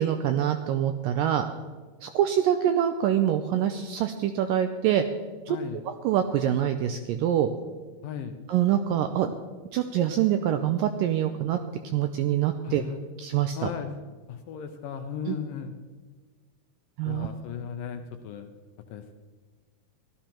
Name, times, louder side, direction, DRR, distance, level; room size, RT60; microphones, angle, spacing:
voice 1, 0.0-1.5 2.0-5.0 5.5-5.6 6.0-7.5 8.5-9.3 9.7-11.6 11.9-12.8 13.2-13.6 15.3-15.4 17.0-17.3, right 10 dB, 85° right, 7 dB, 2.0 m, -25 dB
voice 2, 5.5-5.9 8.0-8.4 12.6-13.0 13.6-13.9 14.3-15.7 17.1-18.5 18.9-19.1, left 8 dB, 75° left, 6 dB, 2.1 m, -36 dB
16.0 x 12.5 x 4.4 m, 1.4 s
omnidirectional pair, 4.5 m